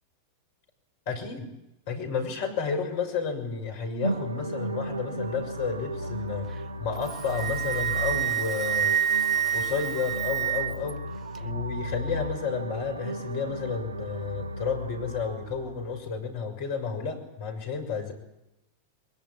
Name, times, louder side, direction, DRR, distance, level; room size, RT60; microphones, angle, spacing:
voice 1, 1.1-1.5 1.9-6.5 6.8-8.9 9.5-11.0 11.4-18.1, left 5 dB, 50° left, 5 dB, 6.4 m, -31 dB
sound 1, 4.0-16.0, right 1 dB, 80° right, 3.5 m, -35 dB
Wind instrument woodwind instrument, 7.0-10.9, right 9 dB, 25° right, 1.4 m, -27 dB
22.0 x 21.5 x 9.8 m, 0.90 s
figure-of-eight pair, 90°, 0 cm